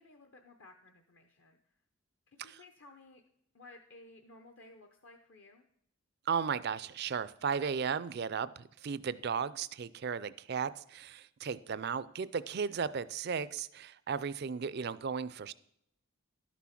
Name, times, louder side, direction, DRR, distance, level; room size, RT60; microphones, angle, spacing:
voice 1, 0.0-1.6 2.3-3.2 3.5-5.6, left 2 dB, 55° left, 5 dB, 0.8 m, -56 dB
voice 2, 6.3-15.5, right 6 dB, 45° right, 16 dB, 0.4 m, -35 dB
11.5 x 6.1 x 5.8 m, 0.72 s
head